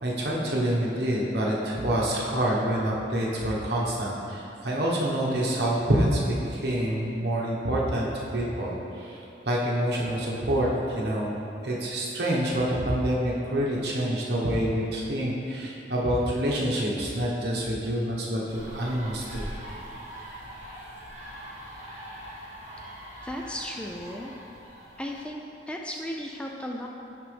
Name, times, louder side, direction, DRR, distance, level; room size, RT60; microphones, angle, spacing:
voice 1, 0.0-10.7 11.0-11.4 11.6-19.5, right 1 dB, 65° right, -4 dB, 1.1 m, -27 dB
sound 1, 18.5-25.3, right 1 dB, 45° right, 1.4 m, -42 dB
voice 2, 23.2-24.3 25.0-26.9, equal, 5° left, 0 dB, 0.3 m, -35 dB
9.5 x 4.1 x 3.4 m, 2.8 s
head